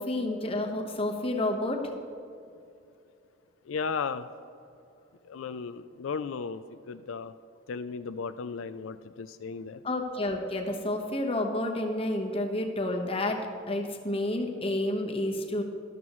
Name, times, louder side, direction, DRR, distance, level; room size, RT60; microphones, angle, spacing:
voice 1, 0.0-1.9 9.8-15.6, left 1 dB, 30° left, 2 dB, 1.2 m, -30 dB
voice 2, 3.7-4.3 5.2-7.3 7.7-9.8, left 5 dB, 85° left, 11 dB, 0.4 m, -35 dB
13.0 x 12.5 x 3.1 m, 2.5 s
head